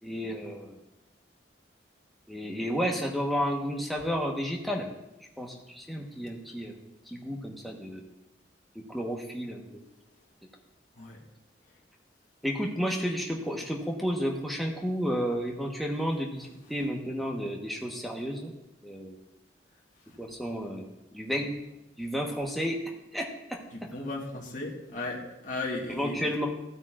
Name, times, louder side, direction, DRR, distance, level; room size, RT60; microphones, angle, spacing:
voice 1, 0.0-0.8 2.3-4.9 5.4-6.8 7.1-8.0 8.7-9.8 12.4-18.5 18.8-19.2 20.2-20.8 21.1-21.5 22.0-22.8 23.1-23.6 25.9-26.5, equal, ahead, -1 dB, 1.2 m, -32 dB
voice 2, 23.7-26.3, left 2 dB, 45° left, -3 dB, 1.6 m, -36 dB
15.5 x 8.8 x 2.5 m, 0.92 s
head